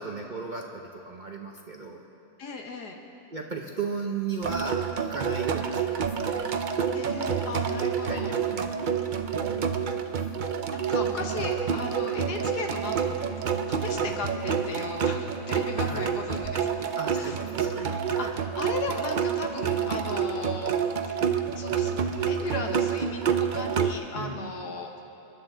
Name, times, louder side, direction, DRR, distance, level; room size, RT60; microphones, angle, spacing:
voice 1, 0.0-2.0 3.3-6.5 7.8-8.7 9.4-9.7 10.1-10.3 13.9-14.2 15.8-16.1 17.0-18.3 24.1-24.5, right 4 dB, 40° right, 1 dB, 0.8 m, -36 dB
voice 2, 2.4-3.0 6.9-8.4 10.7-16.7 17.2-17.4 18.2-20.7 21.1-21.9 22.2-25.0, left 3 dB, 80° left, 3 dB, 1.9 m, -36 dB
sound 1, 4.4-23.9, right 7 dB, 80° right, 0.4 m, -28 dB
28.0 x 11.0 x 3.8 m, 3.0 s
omnidirectional pair, 1.7 m